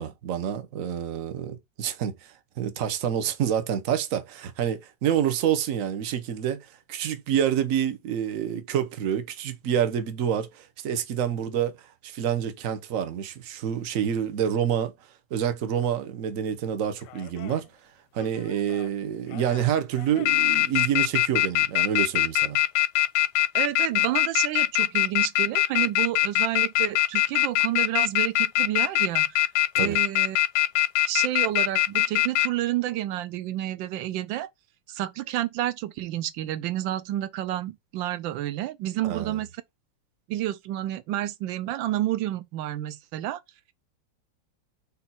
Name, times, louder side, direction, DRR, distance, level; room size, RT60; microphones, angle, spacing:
voice 1, 0.0-14.9 15.3-22.6 29.7-30.0 39.0-39.4, right 9 dB, 55° right, 0.9 m, -28 dB
sound 1, 17.2-17.5 18.2-18.9 19.3-19.6 20.0-32.5, left 14 dB, 90° left, 1.5 m, -22 dB
voice 2, 23.5-29.5 29.8-30.4 31.1-34.5 34.9-39.5 40.3-43.4, right 13 dB, 70° right, 1.2 m, -30 dB
5.5 x 4.2 x 4.2 m
omnidirectional pair, 2.4 m